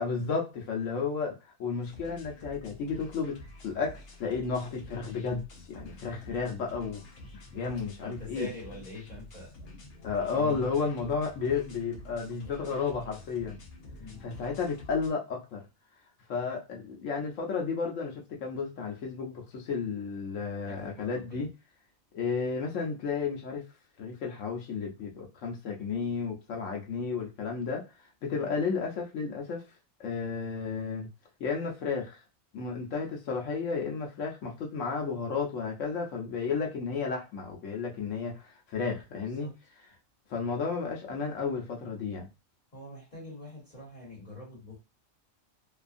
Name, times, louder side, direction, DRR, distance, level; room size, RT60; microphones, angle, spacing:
voice 1, 0.0-3.4 3.6-7.0 7.5-8.5 10.0-13.6 14.2-15.6 16.3-21.5 22.1-23.6 24.0-27.8 28.2-29.6 30.0-31.1 31.4-32.2 32.5-38.5 38.7-39.5 40.3-42.3, left 5 dB, 80° left, 1 dB, 1.1 m, -32 dB
sound 1, 1.8-15.1, left 1 dB, 60° left, 0.9 m, -49 dB
voice 2, 8.0-9.6 10.3-10.8 14.0-14.2 20.6-21.4 28.3-28.5 39.2-39.5 42.7-44.8, left 2 dB, 35° left, -7 dB, 1.5 m, -44 dB
2.8 x 2.3 x 2.5 m, 0.27 s
omnidirectional pair, 1.3 m